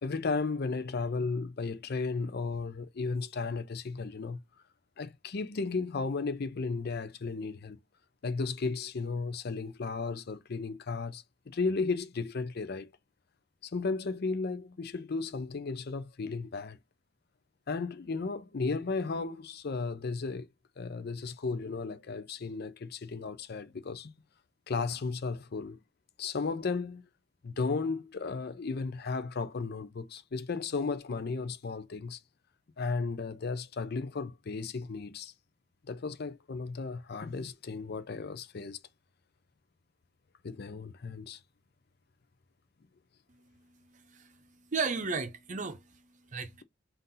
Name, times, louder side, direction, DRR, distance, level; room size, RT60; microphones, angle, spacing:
voice 1, 0.0-4.4 5.0-7.8 8.2-12.9 13.6-16.8 17.7-20.5 20.8-24.1 24.7-25.8 26.2-27.1 27.4-32.2 32.8-35.3 35.9-38.8 40.4-41.4, left 4 dB, 55° left, 0.5 m, -34 dB
voice 2, 43.3-46.6, right 4 dB, 40° right, 0.6 m, -36 dB
4.1 x 2.6 x 3.8 m
head